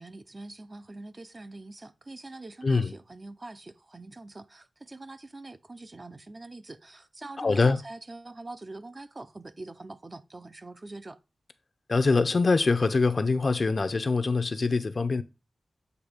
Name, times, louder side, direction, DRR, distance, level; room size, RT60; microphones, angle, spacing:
voice 1, 0.0-11.2, right 2 dB, 30° right, 0.6 m, -44 dB
voice 2, 2.6-2.9 7.4-7.8 11.9-15.2, left 3 dB, 45° left, 0.6 m, -24 dB
8.0 x 2.8 x 5.1 m
wide cardioid pair, 100°, 0 cm